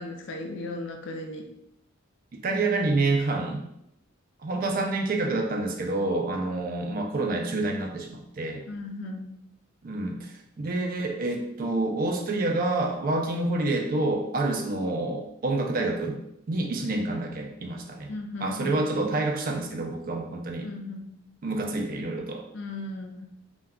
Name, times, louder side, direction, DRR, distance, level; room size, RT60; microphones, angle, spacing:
voice 1, 0.0-1.5 4.5-4.9 8.7-9.3 18.1-18.8 20.6-21.1 22.5-23.2, left 2 dB, 60° left, 3 dB, 0.4 m, -36 dB
voice 2, 2.3-3.6 4.4-8.6 9.8-16.2 16.5-18.1 18.4-20.7 21.4-22.4, right 2 dB, 45° right, 2 dB, 0.4 m, -28 dB
2.2 x 2.2 x 3.6 m, 0.80 s
head